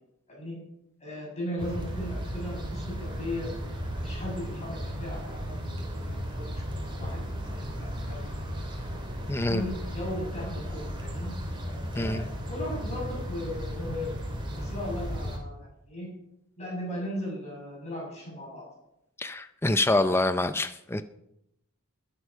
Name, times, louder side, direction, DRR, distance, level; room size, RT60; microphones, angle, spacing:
voice 1, 1.0-3.5 4.0-5.5 5.8-7.2 7.5-8.2 9.5-11.3 11.6-14.1 14.5-16.1 16.6-18.6, left 1 dB, 30° left, -3 dB, 6.8 m, -37 dB
sound 1, 1.6-15.4, equal, 20° right, 3.2 m, -35 dB
voice 2, 9.3-9.6 12.0-12.2 19.2-21.0, left 2 dB, 10° left, 10 dB, 0.5 m, -26 dB
21.0 x 8.1 x 5.6 m, 0.81 s
head